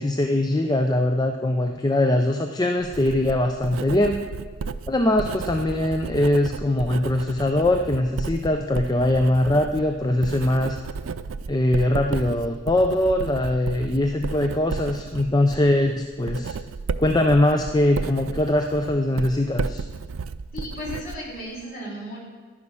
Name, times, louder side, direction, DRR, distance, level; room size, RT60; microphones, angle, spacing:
voice 1, 0.0-4.2 4.9-10.8 11.5-16.6 17.0-19.8, left 1 dB, 20° left, 5 dB, 0.5 m, -22 dB
Writing, 2.8-21.6, right 4 dB, 85° right, 0.4 m, -33 dB
voice 2, 20.5-22.2, equal, 40° left, -3 dB, 4.2 m, -34 dB
11.0 x 9.7 x 6.2 m, 1.5 s
head